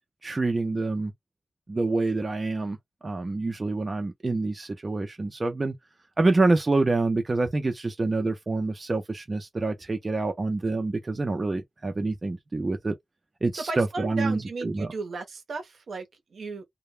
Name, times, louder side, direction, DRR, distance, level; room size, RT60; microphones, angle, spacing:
voice 1, 0.2-1.1 1.7-2.8 3.0-5.7 6.2-12.9 13.4-14.9, right 3 dB, 30° right, 0.4 m, -26 dB
voice 2, 13.5-16.6, right 4 dB, 65° right, 0.6 m, -35 dB
2.1 x 2.0 x 3.1 m
wide cardioid pair, 155°, 0 cm